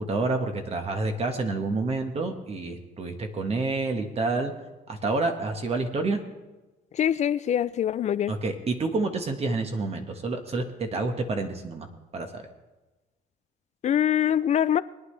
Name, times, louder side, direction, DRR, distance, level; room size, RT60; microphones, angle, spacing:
voice 1, 0.0-4.5 4.9-6.2 8.3-11.9 12.1-12.4, right 3 dB, 35° right, 1.4 m, -28 dB
voice 2, 6.9-8.3 13.8-14.8, left 10 dB, 45° left, 0.4 m, -24 dB
22.5 x 9.7 x 3.3 m
cardioid pair, 110°, 17 cm